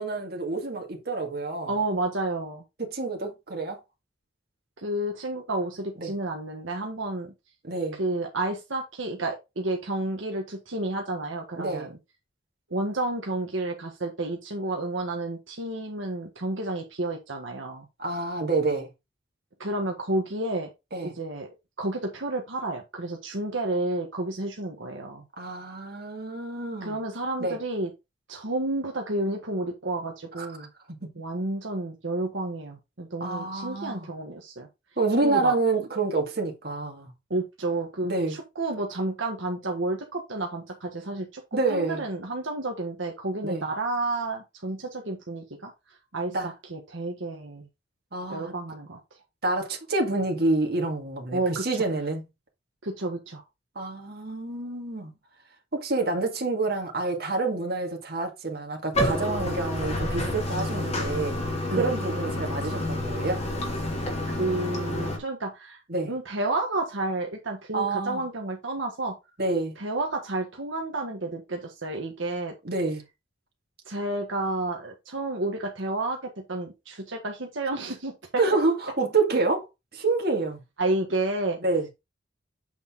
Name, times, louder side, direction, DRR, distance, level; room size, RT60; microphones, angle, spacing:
voice 1, 0.0-1.7 2.8-3.8 6.0-6.1 7.6-8.0 11.6-11.9 18.0-18.9 20.9-21.1 25.4-27.0 27.4-27.6 30.4-30.5 31.0-31.1 33.2-34.1 35.0-37.1 38.0-38.4 41.5-42.0 43.4-43.6 46.3-46.5 48.1-48.5 49.4-52.3 53.8-55.1 55.8-61.3 61.7-63.4 65.9-66.1 67.7-68.2 69.4-69.8 72.6-73.0 78.4-79.7 79.9-80.6 81.6-81.9, right 3 dB, 50° right, 2.0 m, -28 dB
voice 2, 1.7-2.6 4.8-7.3 8.0-11.9 12.7-17.9 19.6-20.7 21.0-21.5 21.8-25.2 26.8-27.9 28.3-30.7 31.2-34.7 35.2-35.5 37.3-45.7 46.1-47.7 48.3-49.0 51.3-51.6 52.8-53.4 61.7-62.0 64.3-65.8 66.1-69.2 69.8-72.5 73.9-78.4 80.8-81.6, right 2 dB, 80° right, 1.4 m, -31 dB
Bathtub (filling or washing), 58.9-65.2, left 1 dB, 35° left, 2.5 m, -29 dB
8.1 x 4.1 x 3.7 m
head